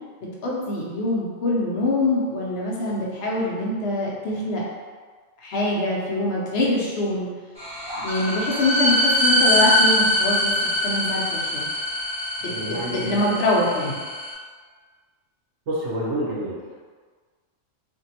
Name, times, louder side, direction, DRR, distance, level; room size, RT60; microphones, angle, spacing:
voice 1, 0.4-4.7 5.4-7.3 8.0-10.5 10.8-11.7 12.4-14.0, left 2 dB, 60° left, -4 dB, 0.8 m, -24 dB
sound 1, 7.6-14.3, left 1 dB, 5° right, 0.5 m, -23 dB
voice 2, 12.5-13.2 15.7-16.6, right 1 dB, 70° right, -5 dB, 1.1 m, -28 dB
2.9 x 2.6 x 2.7 m, 1.5 s
omnidirectional pair, 1.3 m